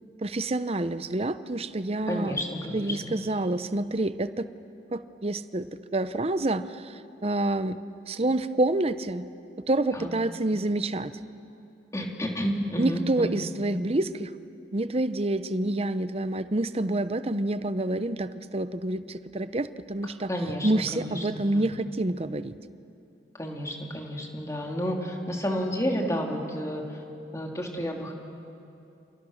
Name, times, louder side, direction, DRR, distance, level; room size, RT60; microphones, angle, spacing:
voice 1, 0.2-2.3 2.7-4.4 4.9-5.7 5.9-7.8 8.1-9.3 9.7-11.1 12.8-14.3 14.7-20.3 20.6-22.5, right 2 dB, 35° right, 12 dB, 0.7 m, -28 dB
voice 2, 2.1-3.1 9.9-10.1 11.9-13.5 20.3-21.6 23.4-26.8 27.3-28.1, equal, 20° left, 1 dB, 2.9 m, -31 dB
29.0 x 29.0 x 6.5 m, 2.7 s
head